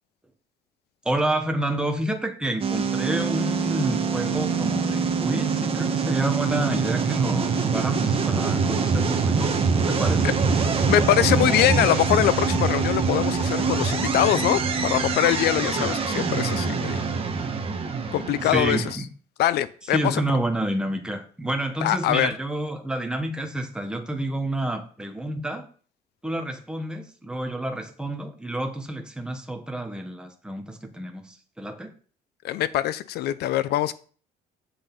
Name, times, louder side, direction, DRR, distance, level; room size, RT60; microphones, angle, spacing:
voice 1, 1.0-10.4 15.8-16.0 18.4-19.1 19.9-25.7 26.2-31.9, right 1 dB, 5° right, 1.3 m, -29 dB
sound 1, 2.6-18.9, right 5 dB, 35° right, 1.4 m, -24 dB
voice 2, 10.6-17.1 18.1-18.8 19.4-20.2 21.8-22.3 32.4-33.9, left 13 dB, 75° left, 0.6 m, -23 dB
7.9 x 6.6 x 4.0 m
cardioid pair, 110°, 17 cm